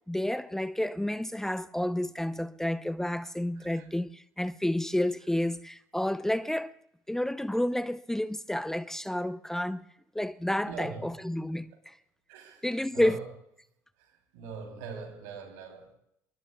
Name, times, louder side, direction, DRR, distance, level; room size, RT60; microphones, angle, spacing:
voice 1, 0.1-6.7 7.1-9.9 10.1-12.0 12.6-13.2, left 1 dB, 5° left, 0.6 m, -30 dB
voice 2, 3.5-3.9 10.7-11.2 12.3-13.3 14.0-15.9, right 5 dB, 85° right, 3.3 m, -43 dB
27.5 x 22.0 x 2.3 m
supercardioid pair, 70°, 8 cm